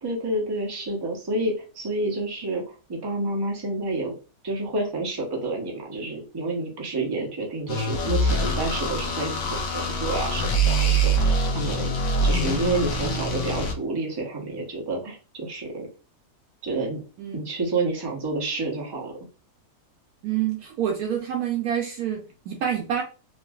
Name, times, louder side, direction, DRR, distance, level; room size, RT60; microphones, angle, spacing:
voice 1, 0.0-4.2 4.4-12.0 12.2-15.9 16.6-17.0 17.3-19.1, right 2 dB, 30° right, 0 dB, 0.4 m, -29 dB
sound 1, 7.7-13.7, right 1 dB, 65° left, 1.0 m, -24 dB
voice 2, 20.2-23.0, right 9 dB, 70° right, 1 dB, 1.0 m, -27 dB
3.2 x 2.5 x 2.3 m, 0.33 s
omnidirectional pair, 1.8 m